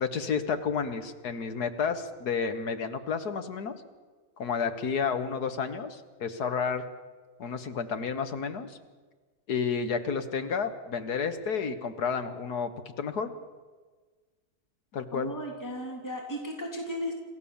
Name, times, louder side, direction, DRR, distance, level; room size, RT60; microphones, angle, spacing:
voice 1, 0.0-3.8 4.4-6.8 7.4-8.8 9.5-13.3 14.9-15.3, left 6 dB, 85° left, 9 dB, 1.9 m, -31 dB
voice 2, 15.1-17.1, equal, 10° left, -1 dB, 3.1 m, -35 dB
27.5 x 15.0 x 7.2 m, 1.4 s
omnidirectional pair, 1.6 m